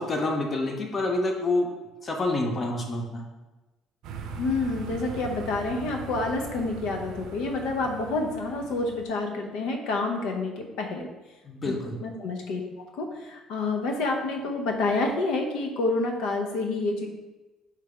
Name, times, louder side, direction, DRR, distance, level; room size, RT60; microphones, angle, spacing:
voice 1, 0.0-1.7 2.0-3.2 11.4-12.0, left 2 dB, 30° left, 2 dB, 0.7 m, -27 dB
sound 1, 4.0-9.0, right 3 dB, 75° right, 0.5 m, -40 dB
voice 2, 4.3-11.1 11.7-11.8 12.0-12.6 13.0-17.1, left 3 dB, 85° left, 3 dB, 0.7 m, -28 dB
3.3 x 3.3 x 4.8 m, 1.1 s
cardioid pair, 140°, 0 cm